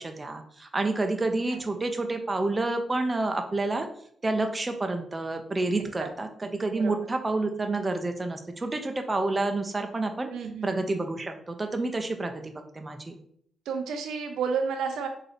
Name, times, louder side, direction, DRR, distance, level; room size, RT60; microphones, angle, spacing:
voice 1, 0.0-3.9 4.2-10.3 10.6-13.2, right 2 dB, 30° right, 5 dB, 0.5 m, -29 dB
voice 2, 5.7-6.1 6.8-6.9 10.3-10.9 13.7-15.1, right 5 dB, 80° right, 5 dB, 0.4 m, -31 dB
3.7 x 2.7 x 3.3 m, 0.64 s
supercardioid pair, 55°, 0 cm